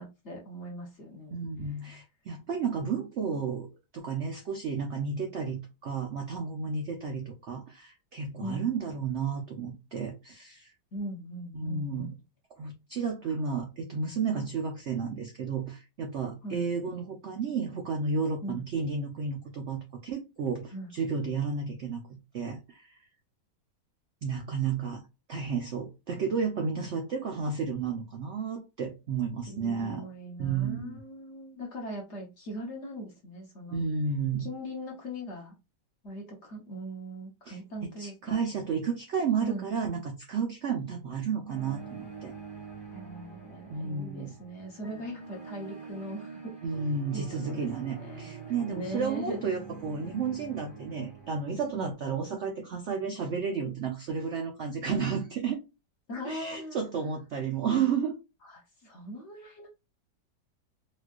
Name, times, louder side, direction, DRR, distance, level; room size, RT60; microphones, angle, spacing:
voice 1, 0.0-1.4 1.8-2.0 8.4-8.7 10.9-12.1 13.2-13.4 16.4-16.6 18.4-18.6 20.7-20.9 29.4-33.8 34.4-35.5 36.0-38.4 39.4-39.7 42.9-46.5 47.1-48.3 48.7-49.4 56.1-56.8 58.4-59.7, equal, 50° left, 0 dB, 1.0 m, -40 dB
voice 2, 1.3-3.7 3.9-10.7 11.5-12.1 12.6-23.0 24.2-25.0 25.3-30.1 30.4-31.0 33.7-34.5 37.5-42.3 43.7-44.3 46.6-55.6 56.2-58.1, right 5 dB, 75° right, 2 dB, 0.6 m, -32 dB
sound 1, 41.5-51.9, right 5 dB, 20° left, 0.8 m, -45 dB
4.3 x 2.4 x 2.3 m, 0.27 s
omnidirectional pair, 1.9 m